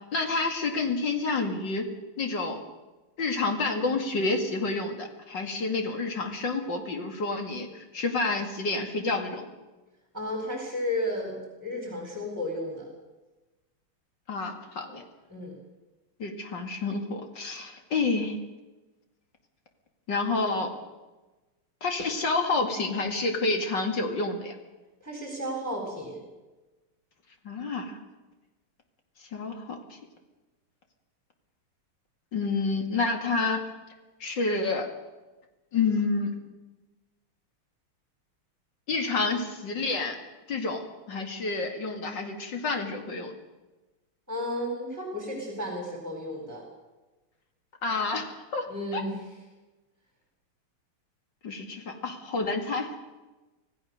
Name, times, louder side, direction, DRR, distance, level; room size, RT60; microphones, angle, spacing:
voice 1, 0.1-1.9 2.2-2.6 3.2-9.5 14.3-15.0 16.2-18.4 20.1-20.7 21.8-24.5 27.4-28.0 29.3-30.0 32.3-33.6 34.2-34.9 35.7-36.4 38.9-40.2 40.5-43.3 47.8-49.0 51.4-53.0, left 3 dB, 55° left, 4 dB, 2.8 m, -29 dB
voice 2, 10.1-12.9 15.3-15.6 25.0-26.2 44.3-46.6 48.7-49.2, left 1 dB, 5° right, 0 dB, 4.4 m, -33 dB
25.5 x 16.0 x 6.6 m, 1.1 s
omnidirectional pair, 2.4 m